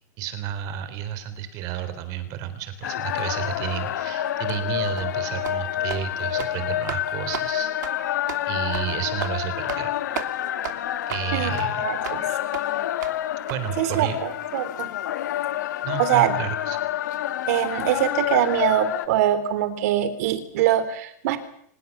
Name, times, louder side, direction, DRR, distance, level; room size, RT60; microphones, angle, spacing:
voice 1, 0.2-7.7 8.5-9.9 11.1-11.9 13.5-14.2 15.8-16.8, right 10 dB, 40° right, 11 dB, 3.9 m, -31 dB
sound 1, 2.8-19.1, left 12 dB, 80° left, 2.1 m, -28 dB
sound 2, 5.0-5.1 5.4-5.6 5.9-6.0 6.3-6.5 6.9-7.0 7.3-7.5 7.8-7.9 8.3-8.4 8.7-8.9 9.2-9.3 9.7-9.9 10.1-10.3 10.6-10.8 11.1-11.3 11.6-11.7 12.0-12.2 12.5-12.6 13.0-13.2 13.5-13.6 13.9-14.0, right 12 dB, 80° right, 2.9 m, -34 dB
voice 2, 11.3-12.3 13.8-14.7 16.0-16.3 17.5-21.4, right 12 dB, 60° right, 12 dB, 3.6 m, -23 dB
24.0 x 21.0 x 7.3 m, 0.65 s
supercardioid pair, 160°, 10 cm